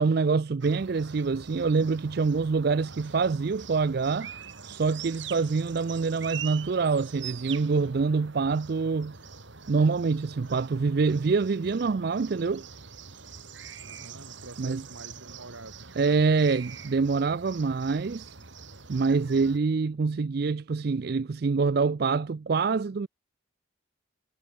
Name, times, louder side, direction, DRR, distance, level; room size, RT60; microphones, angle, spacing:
voice 1, 0.0-4.3 4.7-9.2 9.7-12.6 14.6-14.8 16.0-18.2 18.9-23.1, right 4 dB, 50° right, 0.4 m, -25 dB
sound 1, 0.6-19.6, right 6 dB, 65° right, 2.6 m, -44 dB
voice 2, 13.8-15.9, right 2 dB, 85° right, 3.5 m, -47 dB
head